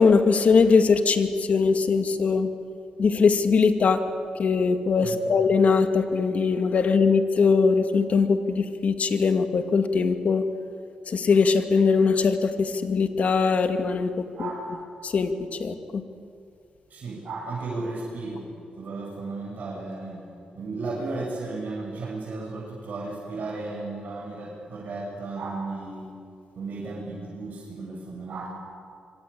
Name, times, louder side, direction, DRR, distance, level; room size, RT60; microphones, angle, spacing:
voice 1, 0.0-2.5 3.0-4.0 4.4-10.4 11.1-14.1 14.4-14.5 15.0-15.3 15.6-16.0, left 5 dB, 55° left, 7 dB, 2.2 m, -21 dB
voice 2, 14.4-14.7 16.9-18.4 18.8-20.2 20.5-26.1 26.6-28.5, right 3 dB, 60° right, -5 dB, 7.8 m, -34 dB
26.0 x 24.5 x 8.7 m, 2.3 s
cardioid pair, 90°, 3 cm